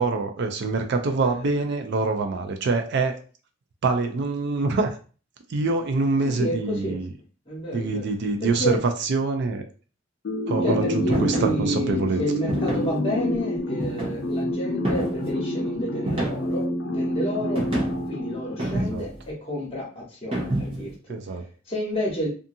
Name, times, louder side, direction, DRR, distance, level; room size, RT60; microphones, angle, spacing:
voice 1, 0.0-3.1 3.8-5.0 5.5-7.1 7.7-9.6 10.5-12.2 18.7-19.0 21.1-21.4, right 3 dB, 60° right, 0.4 m, -25 dB
voice 2, 1.0-1.6 6.2-7.0 7.5-8.8 10.6-17.7 18.0-22.3, equal, 30° left, 1.1 m, -30 dB
sound 1, 10.2-19.0, left 1 dB, 60° left, 0.5 m, -28 dB
sound 2, 11.1-11.5 12.5-13.0 13.8-14.4 14.8-15.3 16.1-16.6 17.5-18.1 18.6-19.2 20.3-20.9, right 1 dB, 30° right, 0.7 m, -28 dB
2.6 x 2.4 x 2.6 m
head